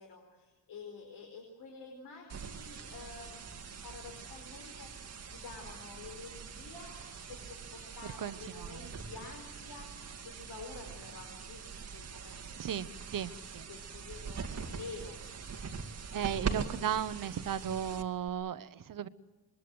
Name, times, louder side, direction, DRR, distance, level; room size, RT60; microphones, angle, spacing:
voice 1, 0.0-3.5 3.8-12.8 13.7-14.4 14.7-15.2 16.1-16.9, left 4 dB, 80° left, 2 dB, 4.7 m, -49 dB
sound 1, 2.3-18.3, right 5 dB, 40° right, 2.1 m, -43 dB
voice 2, 8.2-8.9 12.6-13.7 16.1-19.1, right 9 dB, 55° right, 13 dB, 1.0 m, -36 dB
26.0 x 22.5 x 8.0 m, 1.2 s
wide cardioid pair, 170°, 39 cm